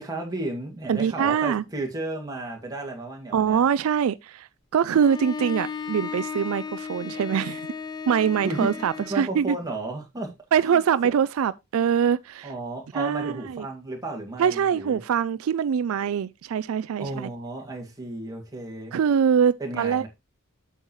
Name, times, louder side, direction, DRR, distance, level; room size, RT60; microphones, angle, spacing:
voice 1, 0.0-3.6 8.4-10.3 10.6-11.1 12.4-15.0 17.0-19.0 19.6-20.1, right 2 dB, 15° right, 2.1 m, -33 dB
voice 2, 0.9-1.6 3.3-7.7 8.1-9.6 10.5-12.5 12.9-13.7 14.4-17.3 18.9-20.0, right 7 dB, 75° right, 0.3 m, -23 dB
Bowed string instrument, 4.9-9.3, left 5 dB, 20° left, 0.5 m, -35 dB
8.1 x 7.1 x 3.1 m
head